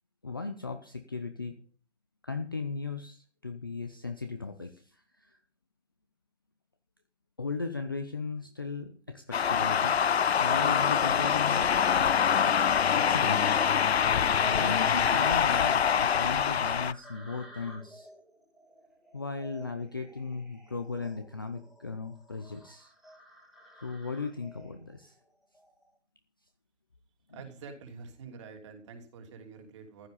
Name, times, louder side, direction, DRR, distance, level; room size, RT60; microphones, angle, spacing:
voice 1, 0.2-1.6 2.2-5.4 7.4-10.0 10.3-11.7 12.0-12.7 12.9-13.6 14.4-18.1 19.1-22.9 23.8-25.2, left 4 dB, 20° left, 6 dB, 0.6 m, -37 dB
sound 1, 9.3-16.9, left 7 dB, 60° left, 0.6 m, -25 dB
sound 2, 14.2-25.9, equal, ahead, 2.1 m, -51 dB
voice 2, 27.3-30.1, right 5 dB, 25° right, 4 dB, 3.1 m, -47 dB
15.0 x 11.5 x 5.4 m, 0.40 s
hypercardioid pair, 165°, 35 cm